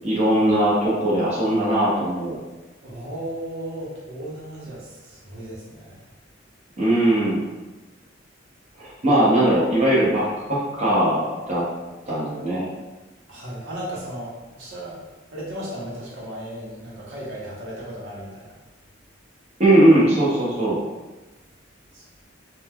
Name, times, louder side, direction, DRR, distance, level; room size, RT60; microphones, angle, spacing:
voice 1, 0.0-2.4 6.8-7.4 8.8-11.6 12.1-12.7 19.6-20.8, right 1 dB, 35° right, -7 dB, 0.6 m, -19 dB
voice 2, 2.8-6.0 13.3-15.0 15.3-18.5 21.9-22.0, right 1 dB, 90° right, -6 dB, 0.8 m, -35 dB
3.0 x 2.2 x 2.2 m, 1.2 s
head